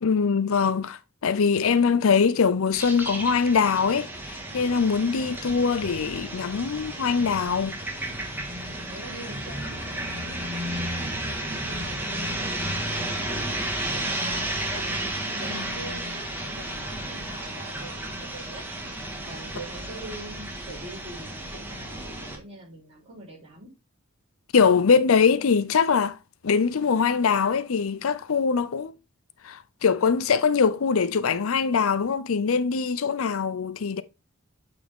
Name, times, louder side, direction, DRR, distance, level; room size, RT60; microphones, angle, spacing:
voice 1, 0.0-7.8 15.5-15.6 24.5-26.2 26.4-28.9 29.4-34.0, left 5 dB, 70° left, 0.5 m, -22 dB
sound 1, 2.7-22.4, right 1 dB, 10° right, 1.7 m, -33 dB
voice 2, 8.9-18.6 18.9-23.7, right 1 dB, 25° right, 4.0 m, -44 dB
8.4 x 4.5 x 3.6 m
head